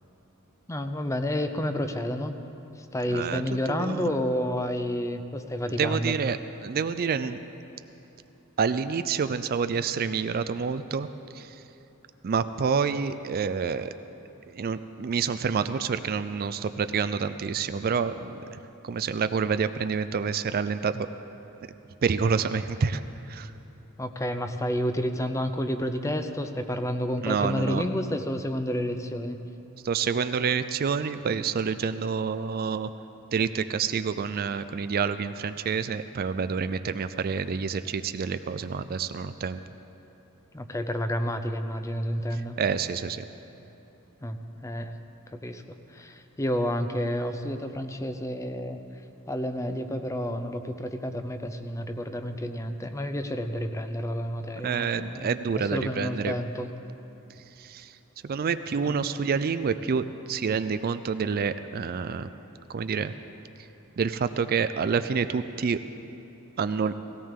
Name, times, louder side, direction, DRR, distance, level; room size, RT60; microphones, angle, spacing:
voice 1, 0.7-2.3 2.8-6.2 24.0-29.4 40.5-42.6 44.2-44.9 45.3-48.8 49.3-55.3 55.5-56.7 58.8-58.9, equal, 15° left, 7 dB, 0.6 m, -30 dB
voice 2, 3.1-3.4 3.7-4.1 5.7-7.4 8.6-11.1 11.3-11.6 12.2-13.9 14.5-21.1 22.0-23.0 23.3-23.5 27.2-27.9 29.8-32.9 33.3-39.6 42.6-43.2 54.6-56.3 57.6-57.9 58.2-62.3 62.7-63.1 64.0-65.8 66.6-66.9, right 6 dB, 45° right, 11 dB, 0.4 m, -28 dB
18.0 x 16.5 x 3.7 m, 2.9 s
head